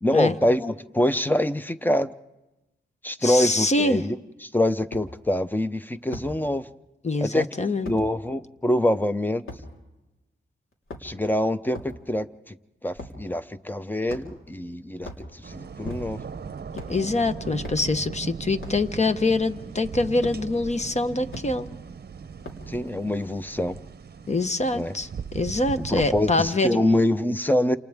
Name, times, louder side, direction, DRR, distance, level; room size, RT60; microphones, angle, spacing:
voice 1, 0.0-2.1 3.0-4.2 4.4-6.7 7.2-9.4 11.0-12.5 12.8-16.2 22.7-23.8 24.7-24.9 25.8-27.8, left 1 dB, 10° left, 12 dB, 0.7 m, -25 dB
voice 2, 3.2-4.0 7.0-7.9 16.9-21.7 24.3-26.8, left 2 dB, 35° left, 10 dB, 1.0 m, -25 dB
sound 1, 4.9-5.1 6.1-6.3 7.8-8.0 9.5-9.6 10.7-11.3 11.7-12.0 12.9-13.2 14.1-14.5 15.0-15.3 15.8-16.3 16.7-17.0 17.6-17.9 18.6-18.8 20.2-20.4 21.3-21.5 22.4-22.7, left 1 dB, 80° left, 3.8 m, -38 dB
sound 2, 15.4-26.4, right 6 dB, 55° right, 0.7 m, -38 dB
29.0 x 28.0 x 3.6 m, 0.99 s
wide cardioid pair, 90°, 20 cm